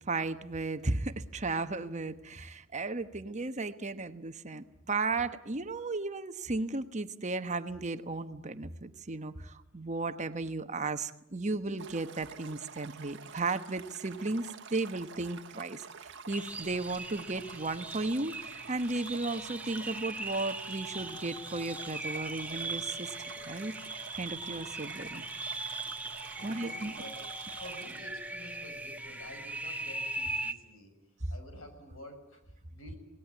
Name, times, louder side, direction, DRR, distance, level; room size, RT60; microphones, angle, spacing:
voice 1, 0.1-15.9 16.3-23.1 23.4-23.7 24.1-25.8 26.4-26.9, right 3 dB, 35° right, 10 dB, 1.1 m, -35 dB
Stream, 11.8-28.0, right 6 dB, 60° right, 1.3 m, -49 dB
sound 1, 16.3-30.5, right 2 dB, 5° right, 1.2 m, -40 dB
voice 2, 26.4-27.2 27.5-30.9 31.3-33.0, left 1 dB, 90° left, 6 dB, 6.3 m, -50 dB
26.5 x 19.0 x 9.5 m, 0.83 s
head